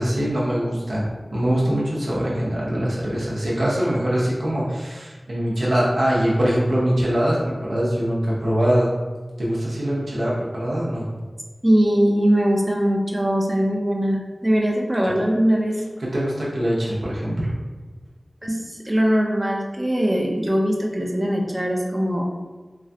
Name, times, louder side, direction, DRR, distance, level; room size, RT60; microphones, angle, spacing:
voice 1, 0.0-8.9 9.4-11.0 16.0-17.5, equal, 85° right, -6 dB, 0.7 m, -23 dB
voice 2, 11.6-15.8 18.4-22.2, equal, 20° right, 0 dB, 0.4 m, -21 dB
3.0 x 2.3 x 2.7 m, 1.3 s
wide cardioid pair, 40°, 0 cm